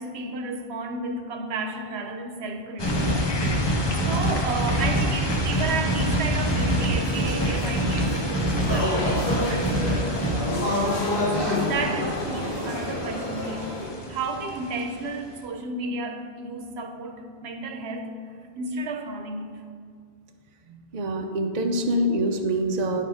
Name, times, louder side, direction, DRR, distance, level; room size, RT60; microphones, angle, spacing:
voice 1, 0.0-10.4 11.3-13.7 14.1-19.6, right 3 dB, 85° right, 6 dB, 1.0 m, -33 dB
sound 1, 2.8-15.4, left 1 dB, 30° left, 0.7 m, -30 dB
sound 2, 2.8-10.3, right 1 dB, 15° left, 1.3 m, -26 dB
sound 3, 7.0-13.9, left 1 dB, 60° left, 1.7 m, -28 dB
voice 2, 20.7-23.0, right 1 dB, 50° right, 4 dB, 0.7 m, -26 dB
9.8 x 4.4 x 4.9 m, 2.1 s
omnidirectional pair, 1.1 m